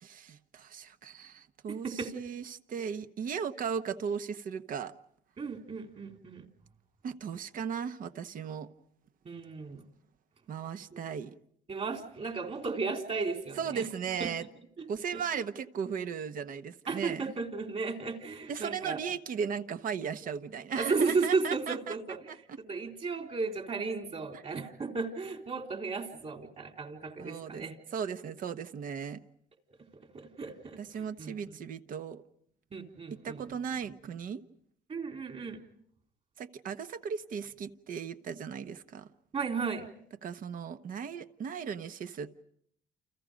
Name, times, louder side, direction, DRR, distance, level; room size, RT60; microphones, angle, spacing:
voice 1, 0.0-4.9 7.0-8.7 10.5-11.3 13.6-14.5 14.9-17.3 18.5-22.0 22.3-22.6 24.3-24.4 27.2-27.6 27.9-29.2 30.8-32.2 33.2-34.4 36.4-39.1 40.2-42.4, right 7 dB, 55° right, 10 dB, 1.2 m, -37 dB
voice 2, 1.7-2.1 5.4-6.5 9.3-9.8 10.9-11.0 11.7-13.9 14.2-14.3 14.8-14.9 15.1-15.2 16.9-19.0 20.8-22.4 22.7-27.8 30.1-31.6 32.7-33.4 34.9-35.7 39.3-39.9, right 4 dB, 40° right, 4 dB, 3.7 m, -34 dB
29.5 x 29.5 x 5.2 m, 0.69 s
cardioid pair, 110°, 17 cm